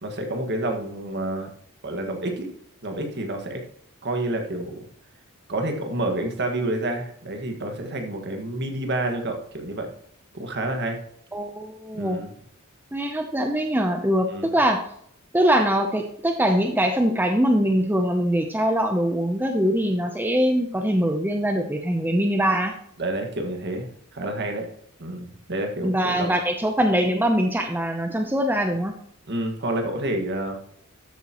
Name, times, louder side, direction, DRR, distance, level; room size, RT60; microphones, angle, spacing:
voice 1, 0.0-1.5 1.8-2.5 2.8-3.6 4.0-4.9 5.5-9.9 10.3-11.0 11.9-12.3 14.3-14.5 23.0-24.7 25.0-26.3 29.3-30.6, right 1 dB, 55° right, 4 dB, 1.8 m, -29 dB
voice 2, 11.3-12.2 12.9-14.8 15.3-22.7 25.8-29.0, equal, 10° right, 4 dB, 0.7 m, -22 dB
13.0 x 8.1 x 3.0 m, 0.66 s
head